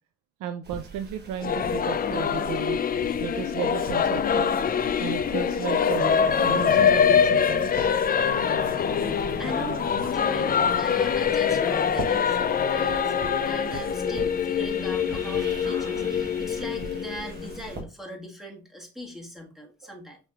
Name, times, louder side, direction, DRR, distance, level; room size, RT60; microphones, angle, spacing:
voice 1, 0.4-2.8 3.2-4.5 5.0-7.9 19.8-19.9, right 9 dB, 85° right, 7 dB, 0.6 m, -34 dB
sound 1, 0.6-17.8, right 3 dB, 35° right, 1.1 m, -41 dB
Singing / Musical instrument, 1.4-17.7, left 7 dB, 30° left, 0.3 m, -24 dB
sound 2, 6.4-16.4, left 5 dB, 85° left, 0.6 m, -41 dB
voice 2, 9.4-20.2, right 1 dB, ahead, 1 dB, 1.3 m, -40 dB
6.1 x 3.3 x 2.3 m, 0.33 s
cardioid pair, 90°, 30 cm